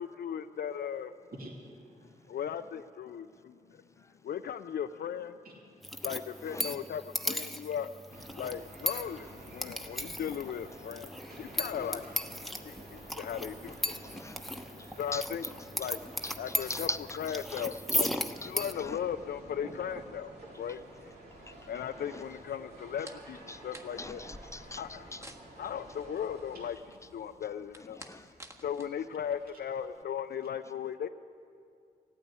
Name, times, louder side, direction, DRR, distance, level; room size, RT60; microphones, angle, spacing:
voice 1, 0.0-1.1 2.3-3.6 4.2-5.3 6.0-7.9 8.4-12.0 12.7-14.0 14.3-14.4 14.7-15.4 15.7-16.0 16.4-16.9 17.2-18.1 18.4-20.3 20.6-21.1 21.7-24.2 24.8-25.0 25.6-26.8 27.1-28.0 28.6-31.1, left 8 dB, 80° left, 9 dB, 0.4 m, -37 dB
voice 2, 1.3-2.5 5.4-6.1 17.8-21.0 26.1-26.2 26.5-26.7 27.3-27.4 28.8-29.1 29.5-29.6, right 1 dB, 65° right, -1 dB, 2.7 m, -51 dB
sound 1, 5.8-18.7, equal, ahead, 1.0 m, -37 dB
voice 3, 6.4-6.9 8.1-8.6 8.8-9.0 9.5-10.1 11.6-12.2 13.1-13.2 13.6-15.5 15.8-15.9 16.2-19.0 21.5-21.7 22.0-22.4 23.0-23.1 23.5-23.6 23.9-25.4 27.8-28.3, left 2 dB, 20° left, 11 dB, 0.7 m, -44 dB
sound 2, 8.1-26.7, right 1 dB, 90° right, 2.4 m, -52 dB
sound 3, 22.7-30.0, right 1 dB, 15° right, 1.5 m, -54 dB
15.5 x 8.9 x 9.6 m, 2.4 s
cardioid pair, 50°, 16 cm